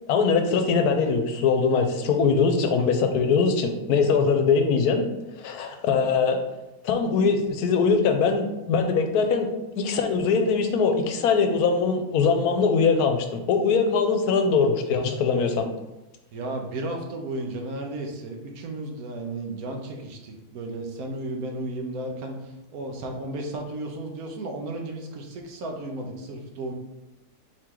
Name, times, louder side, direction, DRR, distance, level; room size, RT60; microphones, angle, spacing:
voice 1, 0.1-5.0 5.4-6.4 6.8-9.5 9.8-15.7, left 5 dB, 80° left, 5 dB, 1.1 m, -22 dB
voice 2, 16.3-26.7, right 2 dB, 75° right, 2 dB, 1.2 m, -34 dB
4.4 x 3.1 x 3.6 m, 0.98 s
omnidirectional pair, 1.6 m